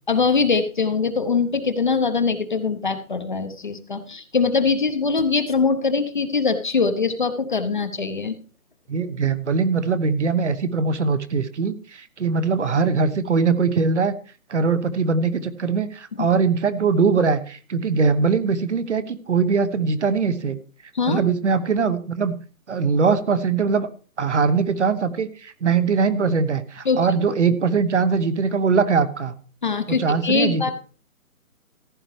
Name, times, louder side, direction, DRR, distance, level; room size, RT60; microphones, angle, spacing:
voice 1, 0.1-8.3 16.2-16.3 20.9-21.2 26.8-27.3 29.6-30.7, left 4 dB, 35° left, 9 dB, 0.8 m, -22 dB
voice 2, 8.9-14.1 14.5-20.6 21.1-22.3 22.7-23.9 24.2-29.3 29.9-30.7, right 5 dB, 50° right, 13 dB, 1.1 m, -21 dB
15.0 x 10.0 x 3.2 m, 0.39 s
hypercardioid pair, 170°, 43 cm